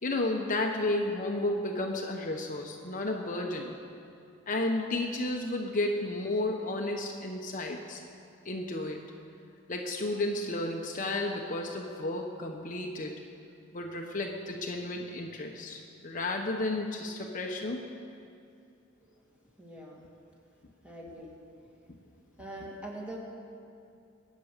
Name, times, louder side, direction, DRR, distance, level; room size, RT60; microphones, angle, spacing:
voice 1, 0.0-3.8 4.5-8.0 8.4-9.0 9.7-13.2 13.7-17.8, left 2 dB, 40° left, 1 dB, 1.1 m, -32 dB
voice 2, 19.6-20.1 20.8-21.3 22.4-23.2, right 1 dB, 5° right, -3 dB, 2.5 m, -43 dB
22.0 x 9.3 x 6.7 m, 2.5 s
head